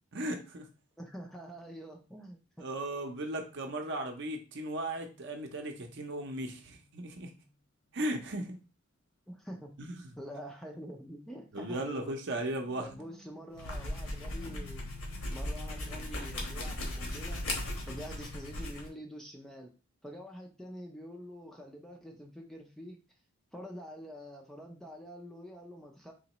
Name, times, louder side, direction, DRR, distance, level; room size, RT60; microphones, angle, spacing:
voice 1, 0.1-0.7 2.6-7.3 7.9-8.6 9.8-10.1 11.5-12.9, right 1 dB, 50° right, 4 dB, 0.7 m, -36 dB
voice 2, 1.0-2.7 9.3-9.7 10.2-12.4 12.8-14.8 15.3-19.7 20.0-23.0 23.5-26.1, equal, ahead, 0 dB, 0.4 m, -46 dB
sound 1, 4.3-7.1 7.3-7.5 7.9-8.2 9.6-10.0 12.4-18.0, left 1 dB, 50° left, 0.6 m, -57 dB
sound 2, 13.5-18.9, left 1 dB, 65° left, 1.2 m, -37 dB
3.9 x 3.1 x 2.9 m, 0.33 s
head